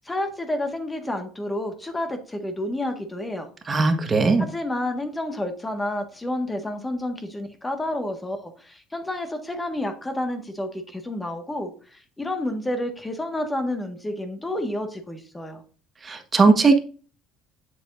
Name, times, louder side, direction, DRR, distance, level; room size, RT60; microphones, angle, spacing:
voice 1, 0.0-3.5 4.4-15.6, left 1 dB, 15° left, 6 dB, 1.5 m, -30 dB
voice 2, 3.7-4.4 16.0-16.8, right 4 dB, 25° right, 6 dB, 1.4 m, -18 dB
7.7 x 7.3 x 2.6 m, 0.38 s
supercardioid pair, 110°, 0 cm